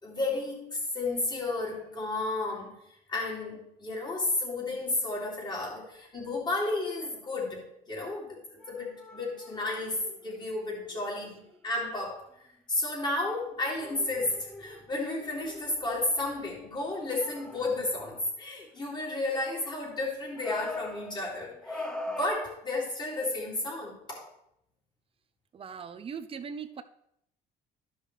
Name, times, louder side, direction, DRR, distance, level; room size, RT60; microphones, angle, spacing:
voice 1, 0.0-2.8 3.1-8.4 8.7-12.2 12.7-24.3, left 2 dB, 25° left, -4 dB, 3.3 m, -32 dB
sound 1, 7.0-7.2 8.6-11.1 11.4-11.6 13.2-13.3 13.8-16.4 17.0-18.0 20.3-22.3, left 2 dB, 5° left, 0.8 m, -42 dB
voice 2, 25.5-26.8, right 6 dB, 35° right, 9 dB, 0.6 m, -39 dB
13.0 x 5.5 x 3.3 m, 0.77 s
cardioid pair, 110°, 17 cm